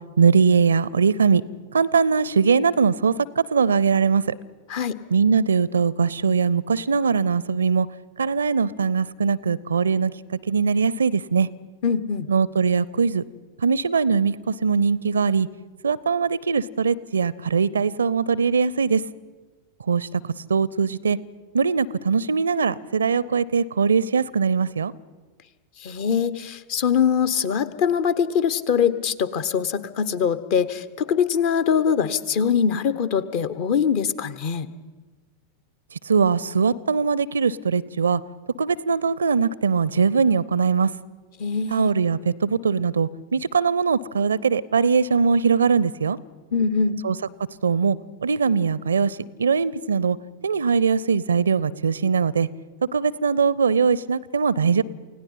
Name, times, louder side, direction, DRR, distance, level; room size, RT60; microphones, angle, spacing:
voice 1, 0.2-1.4 1.7-4.3 5.1-7.9 8.2-10.1 10.5-11.5 12.3-13.2 13.6-15.5 15.8-19.0 19.9-20.1 20.5-21.2 21.5-24.9 36.1-38.2 38.6-40.9 41.7-46.2 47.0-47.2 47.6-48.0 48.2-50.2 50.4-52.5 52.9-54.8, right 5 dB, 70° right, 22 dB, 0.5 m, -21 dB
voice 2, 11.8-12.3 25.8-34.7 41.4-41.9 46.5-47.0, left 7 dB, 45° left, 14 dB, 1.0 m, -23 dB
29.0 x 17.0 x 5.6 m, 1.3 s
figure-of-eight pair, 90°, 0 cm